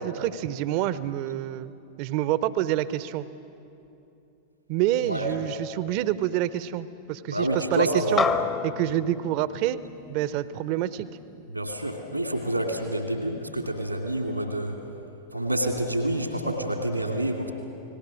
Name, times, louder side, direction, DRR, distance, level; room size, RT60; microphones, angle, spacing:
voice 1, 0.0-3.3 4.7-8.2 8.6-9.8 10.1-11.1, right 13 dB, 45° right, 16 dB, 0.8 m, -27 dB
voice 2, 7.3-8.2 11.5-14.8 15.3-17.5, right 1 dB, 90° right, 4 dB, 2.4 m, -28 dB
sound 1, 8.2-12.8, left 6 dB, 25° left, 1.0 m, -32 dB
29.5 x 19.5 x 6.4 m, 2.8 s
figure-of-eight pair, 90°, 0 cm